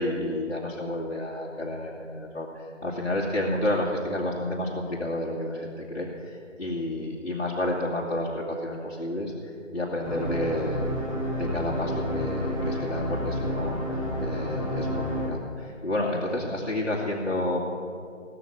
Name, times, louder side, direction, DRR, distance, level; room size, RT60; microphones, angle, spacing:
voice 1, 0.0-10.8 11.3-17.6, left 1 dB, 60° left, -5 dB, 2.4 m, -30 dB
sound 1, 10.0-15.3, equal, 25° left, 2.5 m, -30 dB
19.5 x 6.7 x 8.9 m, 2.3 s
figure-of-eight pair, 170°, 38 cm